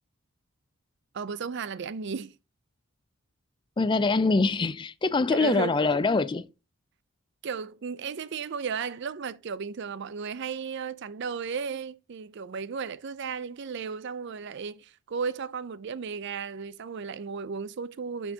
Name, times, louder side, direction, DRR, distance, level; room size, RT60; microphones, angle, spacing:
voice 1, 1.1-2.4 5.3-6.0 7.4-18.3, right 6 dB, 50° right, 0.4 m, -34 dB
voice 2, 3.8-6.5, left 3 dB, 20° left, 0.3 m, -24 dB
11.5 x 4.5 x 2.8 m
head